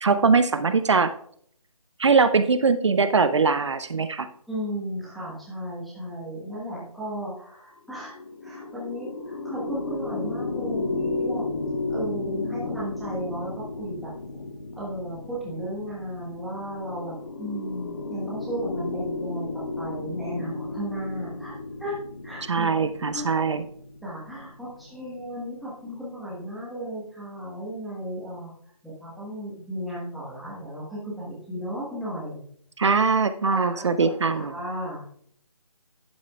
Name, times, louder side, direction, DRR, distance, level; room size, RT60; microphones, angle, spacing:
voice 1, 0.0-1.1 2.0-4.3 22.5-23.6 32.8-34.5, right 4 dB, 50° right, 11 dB, 0.5 m, -21 dB
voice 2, 4.5-8.1 8.4-11.5 11.9-14.4 14.8-21.5 21.8-21.9 22.2-23.3 24.0-28.5 28.8-32.4 33.5-35.0, equal, ahead, -9 dB, 1.3 m, -35 dB
sound 1, 7.9-25.3, left 3 dB, 40° left, 0.7 m, -33 dB
11.0 x 8.4 x 2.4 m, 0.62 s
figure-of-eight pair, 165°, 19 cm